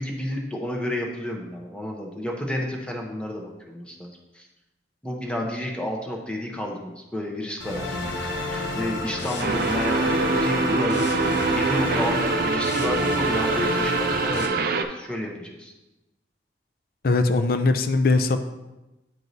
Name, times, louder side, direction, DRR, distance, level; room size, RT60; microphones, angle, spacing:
voice 1, 0.0-4.5 5.0-15.7, left 1 dB, 5° left, 0 dB, 0.8 m, -31 dB
sound 1, 7.6-14.5, left 2 dB, 75° left, 0.8 m, -30 dB
sound 2, 9.4-14.8, right 3 dB, 55° right, 0.4 m, -24 dB
voice 2, 17.0-18.4, left 3 dB, 55° left, 8 dB, 0.4 m, -20 dB
9.1 x 4.6 x 2.7 m, 1.0 s
head